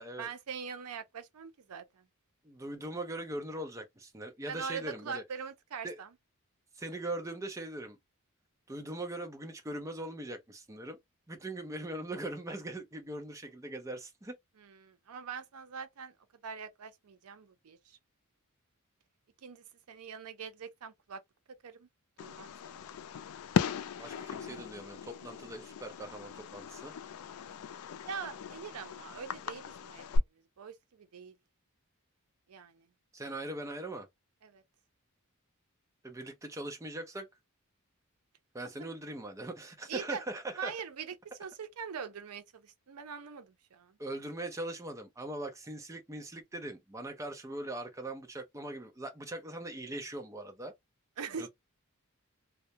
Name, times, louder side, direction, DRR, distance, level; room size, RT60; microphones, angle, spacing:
voice 1, 0.2-2.0 4.5-6.1 14.6-16.1 16.4-18.0 19.4-21.2 21.5-21.9 22.2-22.8 28.0-30.2 30.6-31.3 32.5-32.9 34.4-34.6 38.8-38.9 39.9-40.2 40.6-44.0 51.2-51.5, right 6 dB, 85° right, 0.5 m, -43 dB
voice 2, 2.4-5.2 5.8-6.0 6.8-8.0 8.7-11.0 11.3-14.4 24.0-26.9 33.1-34.1 36.0-37.3 38.5-40.7 44.0-50.7 51.4-51.5, right 1 dB, 15° right, 0.5 m, -40 dB
Fireworks, 22.2-30.2, left 6 dB, 80° left, 0.3 m, -37 dB
2.2 x 2.1 x 2.7 m
head